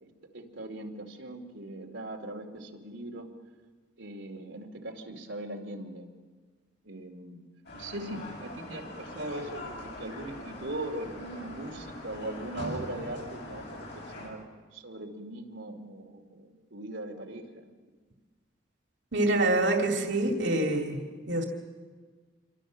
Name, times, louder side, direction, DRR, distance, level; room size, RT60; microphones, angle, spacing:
voice 1, 0.0-3.3 4.0-6.1 6.8-7.4 7.7-14.5 14.7-17.7, right 1 dB, 90° right, 1 dB, 2.5 m, -40 dB
sound 1, 7.6-14.3, left 1 dB, 65° left, 7.9 m, -42 dB
voice 2, 19.1-21.0 21.3-21.4, right 2 dB, 70° right, 2 dB, 2.4 m, -26 dB
27.5 x 23.5 x 6.3 m, 1.4 s
head